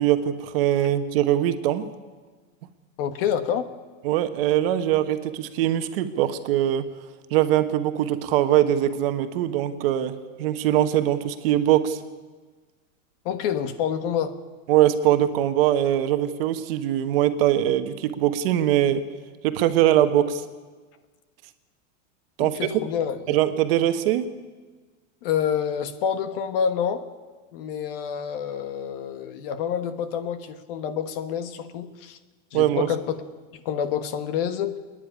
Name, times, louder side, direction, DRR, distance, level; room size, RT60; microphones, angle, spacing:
voice 1, 0.0-1.8 4.0-6.9 7.3-12.0 14.7-19.0 19.4-20.4 22.4-22.6 23.3-24.2 32.5-32.9, right 12 dB, 50° right, 9 dB, 1.3 m, -22 dB
voice 2, 3.0-3.6 13.2-14.4 22.4-23.4 25.2-27.0 27.5-32.2 32.5-33.2 33.6-34.7, left 8 dB, 45° left, 11 dB, 1.4 m, -27 dB
26.5 x 10.0 x 9.9 m, 1.4 s
supercardioid pair, 175°, 38 cm